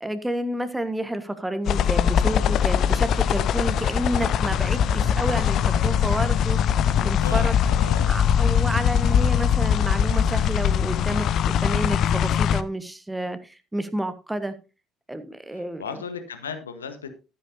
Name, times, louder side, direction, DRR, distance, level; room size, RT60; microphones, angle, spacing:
voice 1, 0.0-6.6 7.0-7.5 8.1-14.5 15.1-15.8, right 1 dB, 10° right, 10 dB, 1.3 m, -30 dB
sound 1, 1.7-12.6, left 8 dB, 50° left, 0.6 m, -21 dB
voice 2, 6.9-8.1 15.5-17.1, left 6 dB, 80° left, 9 dB, 1.1 m, -36 dB
13.0 x 9.9 x 2.7 m, 0.30 s
figure-of-eight pair, 55°, 0 cm